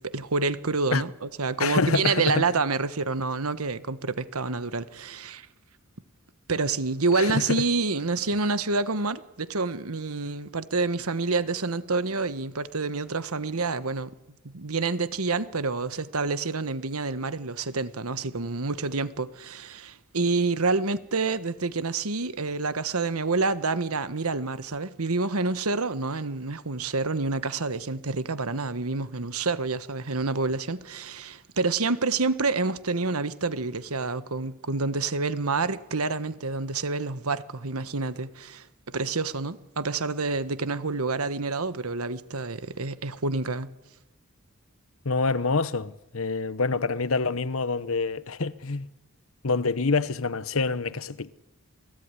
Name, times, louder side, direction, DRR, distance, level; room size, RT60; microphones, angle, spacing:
voice 1, 0.0-5.5 6.5-14.1 14.4-43.7, right 3 dB, 90° right, 1.3 m, -28 dB
voice 2, 1.6-2.4 7.1-7.6 45.0-48.9 49.4-51.4, left 3 dB, 70° left, 1.0 m, -26 dB
28.5 x 19.0 x 9.9 m
head